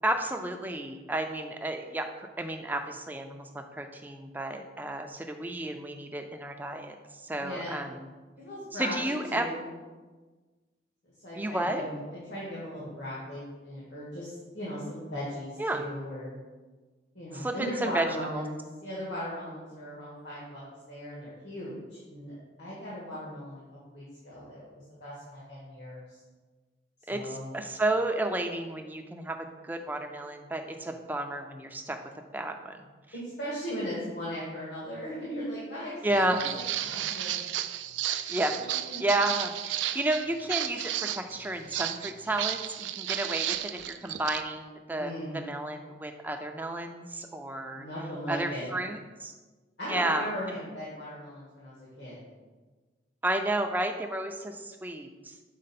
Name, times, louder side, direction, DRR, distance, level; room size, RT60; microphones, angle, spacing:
voice 1, 0.0-7.0 7.2-8.1 8.7-9.5 11.3-11.8 15.6-15.8 17.3-18.1 18.3-18.4 27.1-32.0 32.3-32.8 36.0-36.4 38.3-38.6 39.0-47.9 48.3-49.3 49.9-50.6 53.2-55.3, right 1 dB, 10° right, 5 dB, 0.4 m, -32 dB
voice 2, 7.4-7.8 8.4-9.6 11.2-12.0 12.3-16.3 17.1-22.3 22.6-24.6 25.0-26.2 27.1-27.5 33.1-37.4 38.6-39.1 45.0-45.5 47.7-48.6 49.8-52.2, equal, 75° left, -8 dB, 1.7 m, -38 dB
Walk footsteps, 36.1-44.4, right 12 dB, 85° right, 0.3 m, -33 dB
6.4 x 4.3 x 4.1 m, 1.3 s
head